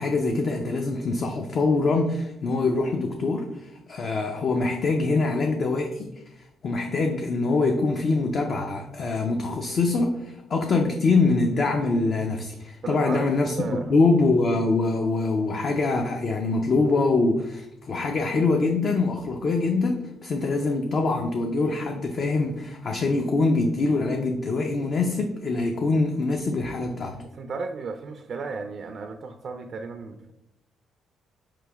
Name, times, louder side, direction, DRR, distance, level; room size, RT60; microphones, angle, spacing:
voice 1, 0.0-6.1 6.4-27.2, left 3 dB, 55° left, 2 dB, 0.5 m, -24 dB
voice 2, 12.8-14.0 27.2-30.3, right 4 dB, 55° right, 7 dB, 0.3 m, -34 dB
4.9 x 3.1 x 3.4 m, 0.87 s
cardioid pair, 90°, 0 cm